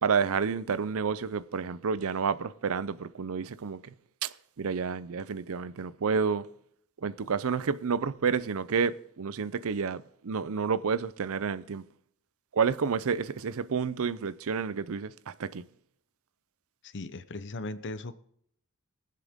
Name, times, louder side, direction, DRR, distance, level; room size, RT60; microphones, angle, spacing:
voice 1, 0.0-3.9 4.2-6.5 7.0-11.9 12.5-15.7, right 5 dB, 70° right, 0.6 m, -30 dB
voice 2, 16.8-18.1, left 2 dB, 55° left, 0.8 m, -38 dB
21.5 x 7.5 x 3.6 m
head